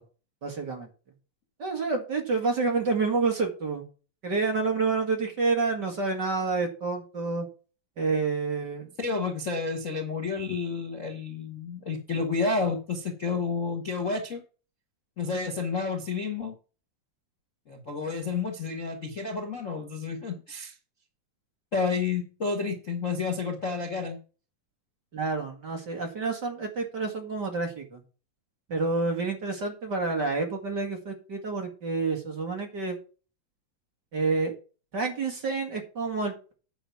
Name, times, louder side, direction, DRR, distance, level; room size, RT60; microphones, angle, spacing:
voice 1, 0.4-0.9 1.6-3.9 4.2-7.5 8.0-8.9 25.1-28.0 28.7-33.0 34.1-34.5 34.9-36.5, right 4 dB, 40° right, 1.9 m, -28 dB
voice 2, 9.0-14.4 15.2-16.5 17.7-20.8 21.7-24.2, left 4 dB, 70° left, 0.7 m, -30 dB
9.7 x 5.0 x 7.1 m
omnidirectional pair, 3.9 m